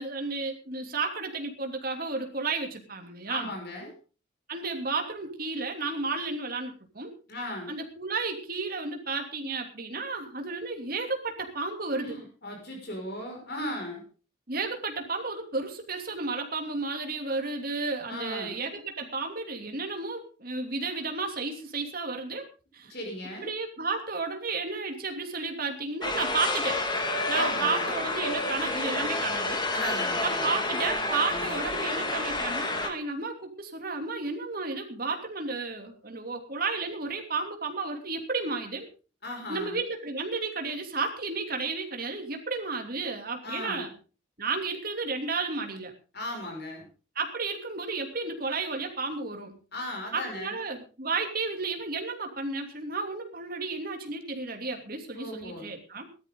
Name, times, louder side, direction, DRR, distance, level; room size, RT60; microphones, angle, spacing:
voice 1, 0.0-3.5 4.5-7.1 7.7-12.2 14.5-22.5 22.7-22.9 23.4-26.8 27.3-29.6 30.2-38.9 39.5-43.9 44.4-45.9 47.1-49.5 50.1-56.1, right 3 dB, 45° right, 3 dB, 2.9 m, -32 dB
voice 2, 3.3-3.9 7.3-7.7 12.0-14.0 18.1-18.6 22.9-23.5 27.3-27.9 29.7-30.5 39.2-39.8 43.4-43.9 46.1-46.9 49.7-50.5 55.1-55.7, left 1 dB, 50° left, 1 dB, 5.8 m, -36 dB
sound 1, 26.0-32.9, left 2 dB, 20° left, 2.0 m, -29 dB
18.5 x 13.0 x 3.9 m, 0.36 s
head